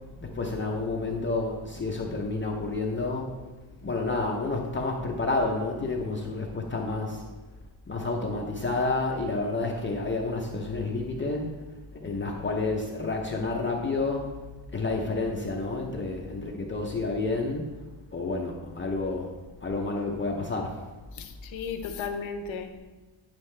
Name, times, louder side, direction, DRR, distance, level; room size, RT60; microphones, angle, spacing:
voice 1, 0.2-3.3 3.8-7.2 7.9-11.5 12.0-14.2 14.7-17.7 18.1-19.3 19.6-20.8, left 3 dB, 25° left, 0 dB, 0.6 m, -29 dB
voice 2, 21.2-22.8, left 6 dB, 65° left, 6 dB, 0.9 m, -35 dB
9.0 x 7.3 x 3.2 m, 1.2 s
wide cardioid pair, 175°, 50 cm